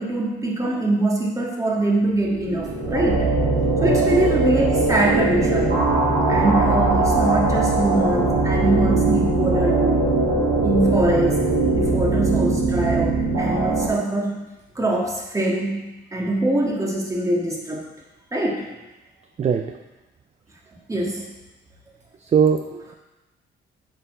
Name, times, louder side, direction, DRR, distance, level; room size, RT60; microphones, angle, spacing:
voice 1, 0.0-3.2 3.8-5.8 6.3-10.1 10.6-11.4 11.7-14.4 14.7-17.9 18.3-18.7 20.9-21.2, right 1 dB, 15° right, -2 dB, 1.6 m, -23 dB
sound 1, 2.3-13.9, right 2 dB, 70° right, 2.4 m, -20 dB
voice 2, 19.4-19.8 22.3-22.9, right 7 dB, 35° right, 6 dB, 0.4 m, -20 dB
7.2 x 4.3 x 4.3 m, 1.1 s
cardioid pair, 90°, 20 cm